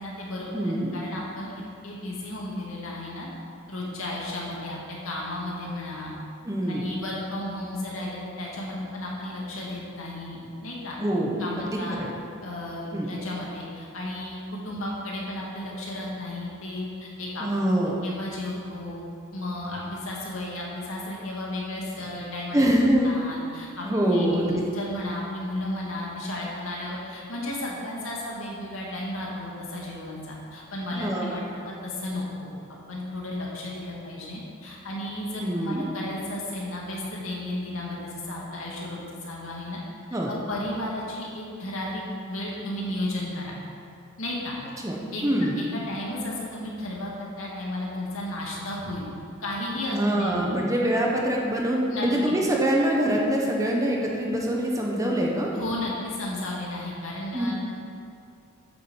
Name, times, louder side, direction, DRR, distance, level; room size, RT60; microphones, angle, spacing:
voice 1, 0.0-3.3 3.7-6.1 6.7-11.0 11.4-12.0 12.4-17.5 18.0-19.0 19.3-23.9 24.1-32.5 32.9-39.8 40.3-42.0 42.3-43.5 44.2-44.6 45.1-45.2 45.6-49.1 49.4-50.5 51.9-52.3 55.5-57.6, left 1 dB, 70° left, -4 dB, 2.5 m, -33 dB
voice 2, 0.5-0.9 6.4-6.8 11.0-12.1 12.9-13.1 17.4-18.0 22.5-23.1 23.8-24.6 30.9-31.3 35.4-35.9 40.1-40.3 44.8-45.0 45.2-45.6 49.8-55.5 57.3-57.5, right 1 dB, 15° right, -2 dB, 1.1 m, -24 dB
8.8 x 7.3 x 7.3 m, 2.5 s
head